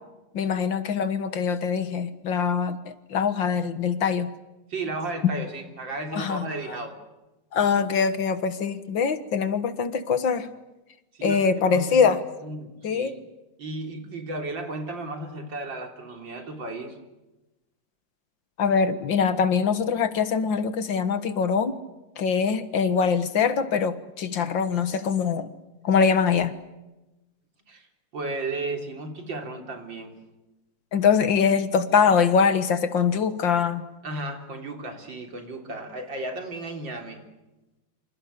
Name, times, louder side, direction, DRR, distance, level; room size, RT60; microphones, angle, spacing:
voice 1, 0.3-4.3 6.1-6.4 7.5-10.5 11.2-12.2 12.8-13.1 18.6-21.7 22.2-25.5 25.8-26.5 30.9-33.9, left 6 dB, 85° left, 11 dB, 2.2 m, -23 dB
voice 2, 4.7-7.0 11.1-12.1 12.4-13.2 13.6-17.0 27.7-27.9 28.1-30.2 34.0-37.2, right 2 dB, 90° right, 4 dB, 4.3 m, -34 dB
27.5 x 27.0 x 6.8 m, 1.0 s
omnidirectional pair, 2.0 m